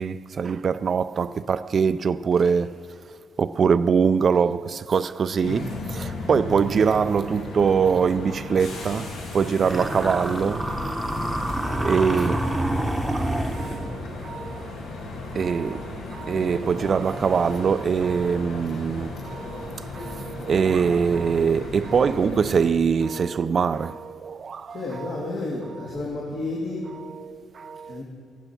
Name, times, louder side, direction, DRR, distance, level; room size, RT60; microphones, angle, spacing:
voice 1, 0.0-2.8 3.4-10.8 11.6-14.8 15.3-25.3 27.0-28.0, right 6 dB, 45° right, 0.3 m, -24 dB
sound 1, 5.4-22.6, left 2 dB, 85° left, 2.4 m, -35 dB
sound 2, 9.7-14.0, right 1 dB, 5° right, 0.9 m, -27 dB
voice 2, 24.7-26.9 27.9-28.0, left 2 dB, 65° left, 2.5 m, -31 dB
14.5 x 9.0 x 6.0 m
cardioid pair, 90°, 0 cm